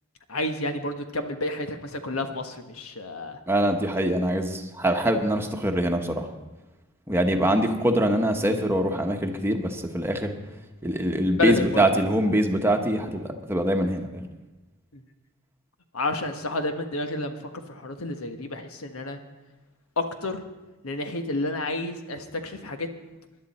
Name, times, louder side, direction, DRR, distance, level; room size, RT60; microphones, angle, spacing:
voice 1, 0.3-3.4 7.3-7.5 11.3-12.3 14.9-15.0 15.9-19.2 20.0-20.4 20.8-22.9, left 2 dB, 85° left, 6 dB, 1.3 m, -30 dB
voice 2, 3.5-6.3 7.1-10.3 10.8-14.3, right 1 dB, 10° right, 4 dB, 1.1 m, -24 dB
20.0 x 11.0 x 4.3 m, 1.1 s
head